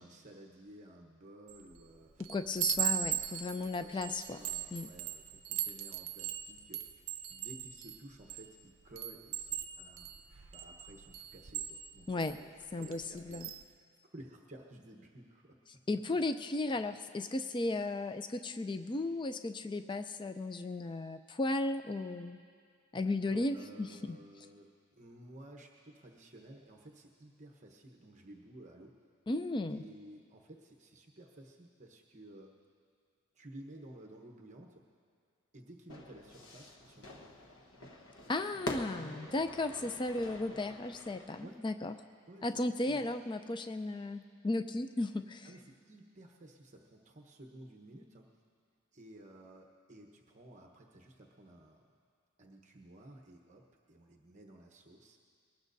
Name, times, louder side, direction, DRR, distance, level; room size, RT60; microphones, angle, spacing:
voice 1, 0.0-2.3 2.6-10.1 10.5-13.8 14.1-15.6 23.2-29.0 29.7-32.5 33.3-34.9 35.5-37.2 38.2-39.9 41.4-41.7 42.3-43.2 45.4-48.3 48.9-51.9 52.4-55.2, right 1 dB, 35° right, 1 dB, 1.0 m, -54 dB
Chime, 1.5-1.8 2.2-8.5 9.0-12.3 12.8-13.0 13.3-13.6, right 11 dB, 65° right, 0.6 m, -38 dB
voice 2, 2.2-4.4 4.7-4.9 12.1-12.4 12.7-13.5 15.9-22.4 22.9-24.2 29.3-29.8 38.3-41.9 42.4-45.5, left 2 dB, 20° left, 9 dB, 0.4 m, -35 dB
Fire / Fireworks, 35.9-41.5, left 1 dB, 65° left, 1.1 m, -46 dB
23.0 x 19.0 x 2.6 m, 2.2 s
head